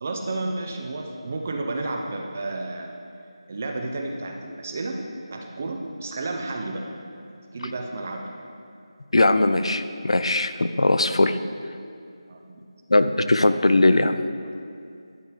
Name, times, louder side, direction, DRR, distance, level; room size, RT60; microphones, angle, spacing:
voice 1, 0.0-2.9 3.5-5.0 5.3-6.9 7.2-8.3 12.3-12.6 14.4-14.5, right 2 dB, 20° right, 3 dB, 0.4 m, -31 dB
voice 2, 9.1-11.4 12.9-14.2, left 2 dB, 80° left, 10 dB, 0.5 m, -20 dB
11.0 x 4.6 x 5.0 m, 2.4 s
figure-of-eight pair, 175°, 3 cm